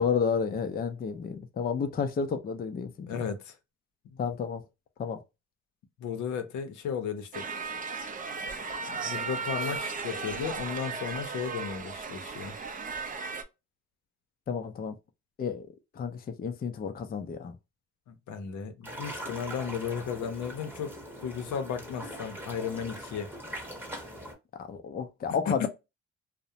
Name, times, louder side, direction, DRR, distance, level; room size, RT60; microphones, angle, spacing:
voice 1, 0.0-3.3 4.2-4.6 5.0-5.2 14.5-15.0 15.4-15.7 16.0-17.6 24.6-25.7, left 6 dB, 30° left, 0.4 m, -31 dB
voice 2, 3.1-3.5 4.1-4.2 6.0-7.4 8.9-12.6 18.1-23.3 25.5-25.7, left 7 dB, 75° left, 0.6 m, -35 dB
sound 1, 7.3-13.4, right 4 dB, 30° right, 0.5 m, -36 dB
sound 2, 18.8-24.3, equal, 5° right, 0.8 m, -41 dB
2.4 x 2.0 x 2.7 m
cardioid pair, 90°, 30 cm